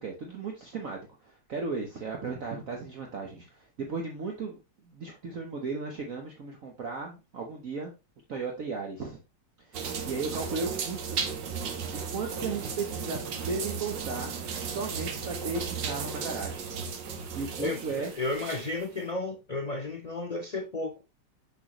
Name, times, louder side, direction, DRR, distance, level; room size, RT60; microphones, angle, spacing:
voice 1, 0.0-7.9 8.3-9.2 9.7-11.2 11.9-16.7 17.3-18.1, right 4 dB, 50° right, 1.2 m, -36 dB
sound 1, 9.7-18.9, right 6 dB, 75° right, 1.6 m, -35 dB
voice 2, 17.6-21.0, left 2 dB, 60° left, 0.4 m, -33 dB
6.3 x 6.2 x 3.0 m
omnidirectional pair, 2.0 m